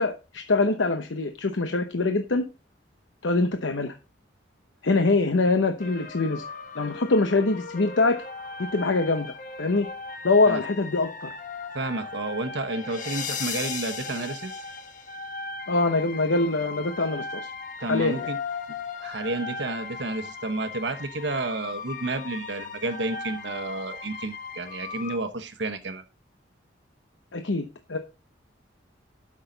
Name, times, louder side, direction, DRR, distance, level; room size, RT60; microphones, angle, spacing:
voice 1, 0.0-2.4 3.2-3.9 4.8-6.4 6.8-8.2 8.7-9.3 9.6-9.9 10.2-11.3 15.7-17.5 17.9-18.3 27.3-28.0, left 3 dB, 90° left, 7 dB, 0.9 m, -24 dB
sound 1, 5.8-25.2, left 4 dB, 45° left, 1.3 m, -37 dB
voice 2, 11.7-14.6 17.8-18.4 19.0-26.0, right 2 dB, 70° right, 9 dB, 1.1 m, -31 dB
12.0 x 6.5 x 3.9 m, 0.30 s
head